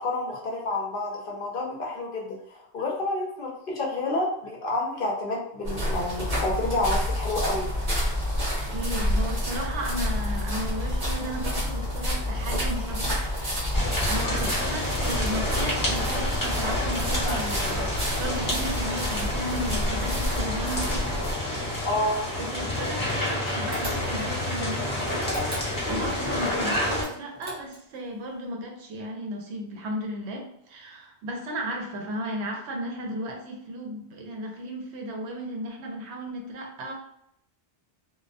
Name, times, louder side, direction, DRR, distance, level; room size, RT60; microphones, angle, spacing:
voice 1, 0.0-7.7 21.8-22.2, left 2 dB, 60° left, -2 dB, 0.7 m, -29 dB
sound 1, 5.6-21.3, equal, 40° right, 0.9 m, -29 dB
voice 2, 8.7-13.3 14.1-21.1 22.4-36.9, equal, 75° right, 1 dB, 0.8 m, -35 dB
sound 2, 13.7-27.0, left 1 dB, 20° left, 0.7 m, -29 dB
sound 3, 23.7-24.4 25.2-26.1 27.0-28.0, equal, 20° right, 0.5 m, -36 dB
2.2 x 2.1 x 2.5 m, 0.75 s
omnidirectional pair, 1.1 m